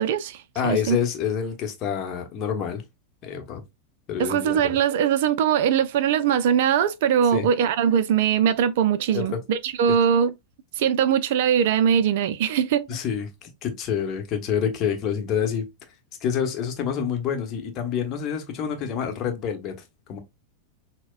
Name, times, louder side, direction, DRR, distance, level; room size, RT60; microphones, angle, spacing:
voice 1, 0.0-1.0 4.2-10.3 10.8-13.0, right 8 dB, 50° right, 0.4 m, -21 dB
voice 2, 0.5-2.8 3.2-3.6 4.1-4.6 7.3-7.5 9.1-9.4 12.9-15.7 16.2-19.7 20.1-20.2, left 8 dB, 35° left, 1.0 m, -27 dB
6.2 x 2.1 x 2.3 m
figure-of-eight pair, 90°, 0 cm